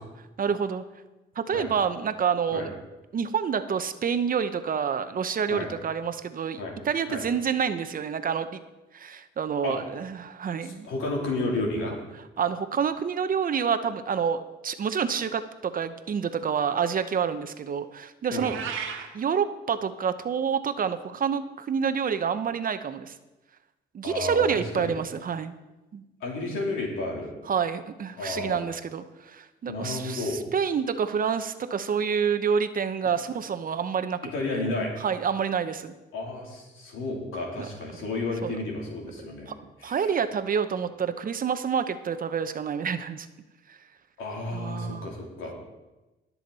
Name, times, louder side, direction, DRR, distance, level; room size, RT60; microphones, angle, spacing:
voice 1, 0.4-0.8 1.4-2.7 3.1-8.6 8.9-10.9 12.4-18.6 19.1-23.1 23.9-25.6 25.9-26.0 27.5-34.2 35.0-35.9 37.6-37.7 38.4-38.5 39.5-39.6 39.8-43.3 43.7-43.8 44.5-45.1, right 7 dB, 45° right, 10 dB, 0.8 m, -28 dB
voice 2, 10.6-11.9 18.3-18.5 24.0-25.0 26.2-27.3 28.2-28.6 29.6-30.4 34.3-34.9 36.1-40.1 44.2-45.5, left 2 dB, 85° left, -1 dB, 3.3 m, -32 dB
Meow, 18.3-19.1, right 7 dB, 80° right, 1.6 m, -34 dB
20.0 x 7.2 x 4.1 m, 1.1 s
cardioid pair, 90°, 20 cm